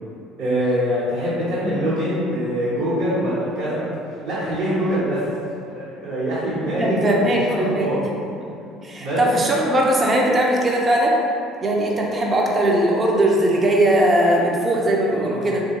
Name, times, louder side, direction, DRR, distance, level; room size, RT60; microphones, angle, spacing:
voice 1, 0.4-3.8 4.2-5.2 5.6-8.0 9.0-9.5 15.1-15.5, equal, 60° right, -13 dB, 1.0 m, -24 dB
voice 2, 6.8-7.9 8.4-8.5 8.8-11.2 11.6-15.6, right 1 dB, 30° right, -2 dB, 0.6 m, -19 dB
3.6 x 2.2 x 3.0 m, 2.6 s
hypercardioid pair, 60°, 0 cm